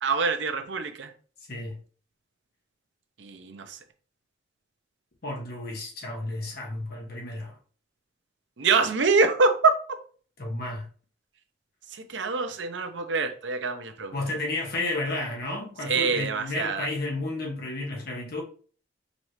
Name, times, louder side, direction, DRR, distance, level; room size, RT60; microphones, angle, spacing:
voice 1, 0.0-1.1 3.2-3.8 8.6-9.7 11.9-14.1 15.9-16.9, right 4 dB, 85° right, 0.7 m, -25 dB
voice 2, 1.5-1.8 5.2-7.6 10.4-10.9 14.1-18.4, left 2 dB, 60° left, 1.3 m, -32 dB
5.2 x 3.1 x 3.1 m
head